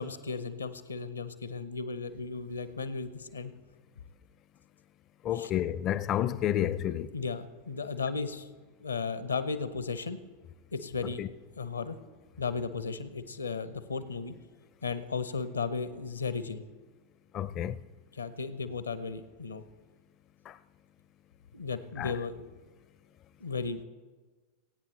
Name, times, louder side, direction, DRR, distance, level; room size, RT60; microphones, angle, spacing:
voice 1, 0.0-3.5 5.3-5.5 7.1-8.5 8.8-10.2 10.7-11.2 11.6-12.0 12.4-14.3 14.8-16.6 18.1-19.6 21.5-22.5 23.4-23.8, left 4 dB, 75° left, 0.8 m, -35 dB
voice 2, 5.2-7.1 11.2-11.3 17.3-17.8 20.5-20.6 22.0-22.1, left 11 dB, 35° left, 0.4 m, -30 dB
22.5 x 8.8 x 3.2 m
figure-of-eight pair, 90°, 0 cm